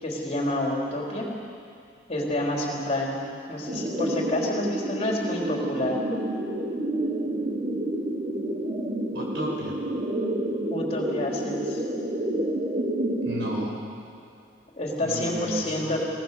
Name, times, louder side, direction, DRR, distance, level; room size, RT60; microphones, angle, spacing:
voice 1, 0.0-1.3 2.1-6.0 10.7-11.8 14.7-16.0, left 1 dB, 35° left, -2 dB, 3.7 m, -28 dB
sound 1, 3.7-13.7, right 1 dB, 30° right, 1.5 m, -29 dB
voice 2, 9.1-9.8 13.2-13.9 15.0-16.0, right 1 dB, 65° right, -2 dB, 5.3 m, -33 dB
22.0 x 18.0 x 6.8 m, 2.4 s
head